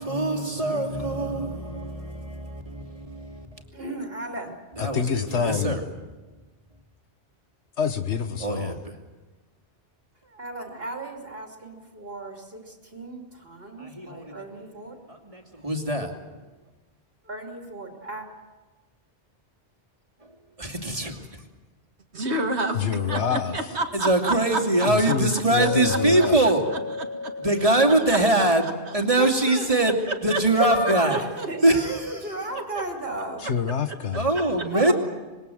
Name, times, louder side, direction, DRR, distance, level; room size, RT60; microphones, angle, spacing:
voice 1, 0.0-3.6 4.8-5.8 8.4-9.0 13.8-14.4 15.1-16.2 20.6-21.4 23.9-26.6 27.4-28.6 28.9-31.2 31.6-32.4 34.1-34.9, right 1 dB, 30° right, 2.7 m, -23 dB
voice 2, 3.7-4.6 10.3-15.0 17.2-18.3 29.2-29.8 30.6-33.5 34.7-34.9, right 2 dB, 60° right, 3.1 m, -34 dB
voice 3, 4.8-5.8 7.8-8.7 22.7-23.6 24.9-26.3 33.4-34.2, left 7 dB, 85° left, 1.5 m, -27 dB
voice 4, 22.1-25.2 25.9-26.3 26.7-27.3 28.1-28.2 28.6-28.9 30.1-30.4 30.9-31.5 32.6-32.8 33.7-33.8, right 2 dB, 75° right, 2.4 m, -30 dB
Chink clink, 25.6-29.7, left 4 dB, 60° left, 1.1 m, -34 dB
26.0 x 21.0 x 7.8 m
omnidirectional pair, 1.1 m